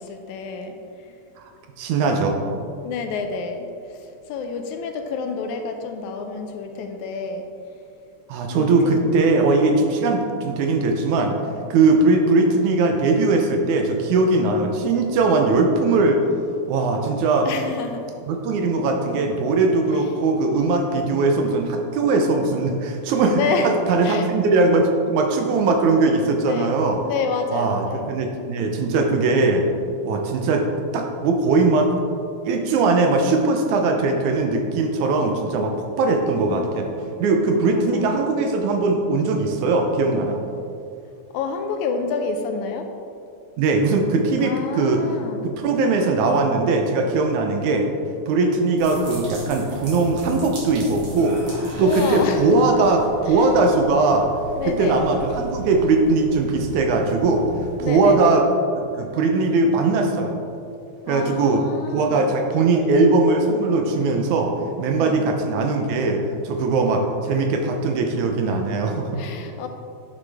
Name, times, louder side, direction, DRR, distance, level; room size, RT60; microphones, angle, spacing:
voice 1, 0.0-1.2 2.8-7.4 8.5-9.1 17.5-18.1 19.9-20.4 23.3-23.8 24.0-24.3 26.3-26.7 27.0-28.1 36.3-36.8 37.5-38.2 41.3-42.9 44.4-45.5 51.8-52.8 53.3-53.5 54.6-55.0 57.8-58.3 61.1-62.3 64.9-65.3 68.5-68.6 69.2-69.7, left 4 dB, 80° left, 5 dB, 2.0 m, -29 dB
voice 2, 1.8-2.4 8.3-11.4 11.7-16.2 16.7-17.5 18.3-27.0 27.5-29.7 30.1-30.7 30.9-31.9 32.4-36.9 37.2-40.4 43.6-45.0 45.6-47.9 48.3-51.4 51.8-54.3 54.7-57.5 57.8-58.4 58.8-60.4 61.1-61.6 61.9-69.2, right 3 dB, 75° right, 3 dB, 2.1 m, -20 dB
sound 1, 48.8-57.8, equal, 45° right, 2.7 m, -36 dB
9.2 x 7.3 x 3.4 m, 2.5 s
omnidirectional pair, 3.6 m